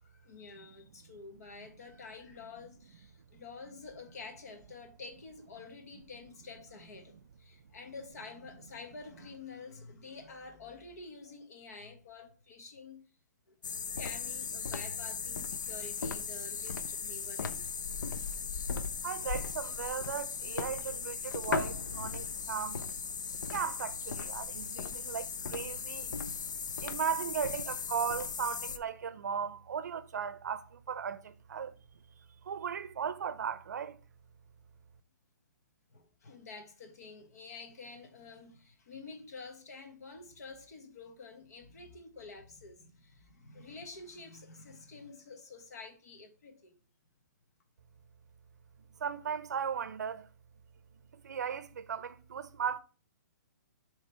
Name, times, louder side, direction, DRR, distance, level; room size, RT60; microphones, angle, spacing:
voice 1, 0.0-13.1 13.5-13.6 13.9-17.7 35.9-46.8, left 4 dB, 55° left, 1.3 m, -49 dB
sound 1, 13.6-28.8, left 5 dB, 85° left, 0.6 m, -37 dB
voice 2, 19.0-22.8 23.5-26.2 26.8-31.7 32.4-34.0 49.0-50.3 51.1-52.8, right 7 dB, 70° right, 0.5 m, -37 dB
6.7 x 3.4 x 4.4 m
hypercardioid pair, 175°, 10 cm